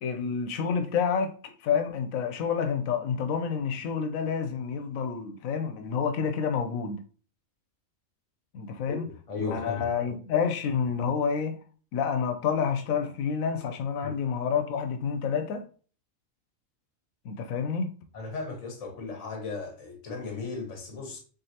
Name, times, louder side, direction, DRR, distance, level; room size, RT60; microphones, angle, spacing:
voice 1, 0.0-7.0 8.5-9.0 9.4-11.6 11.9-15.7 17.2-17.9, left 6 dB, 85° left, 1.1 m, -29 dB
voice 2, 8.9-9.9 14.0-14.2 18.1-21.2, left 4 dB, 65° left, 1.4 m, -36 dB
3.8 x 3.6 x 2.8 m
omnidirectional pair, 1.4 m